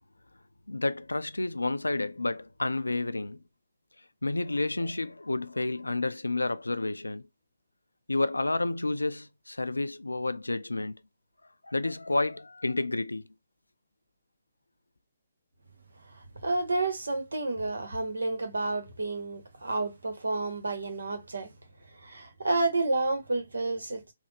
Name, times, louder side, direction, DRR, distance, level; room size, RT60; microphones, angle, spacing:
voice 1, 0.7-3.4 4.2-7.3 8.1-11.0 11.6-13.3, left 2 dB, 90° left, 0.3 m, -30 dB
voice 2, 16.4-21.5 22.0-24.1, right 2 dB, 75° right, 1.0 m, -30 dB
3.3 x 2.1 x 3.0 m
figure-of-eight pair, 140°, 0 cm